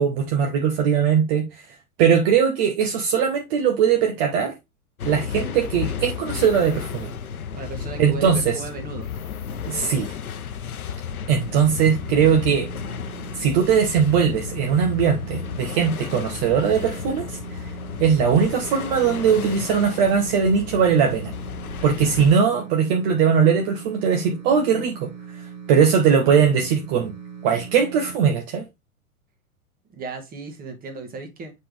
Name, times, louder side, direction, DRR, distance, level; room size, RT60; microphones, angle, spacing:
voice 1, 0.0-1.5 2.0-4.5 5.0-7.1 8.0-8.6 9.7-10.1 11.3-12.7 13.3-17.4 18.0-21.3 21.8-25.1 25.7-27.1 27.4-28.6, right 7 dB, 40° right, 1.2 m, -20 dB
sound 1, 5.0-22.4, left 7 dB, 75° left, 0.8 m, -33 dB
voice 2, 7.5-9.1 30.0-31.5, right 4 dB, 20° right, 1.7 m, -35 dB
sound 2, 11.3-28.2, right 7 dB, 70° right, 2.5 m, -40 dB
7.3 x 4.3 x 3.4 m
figure-of-eight pair, 100°, 43 cm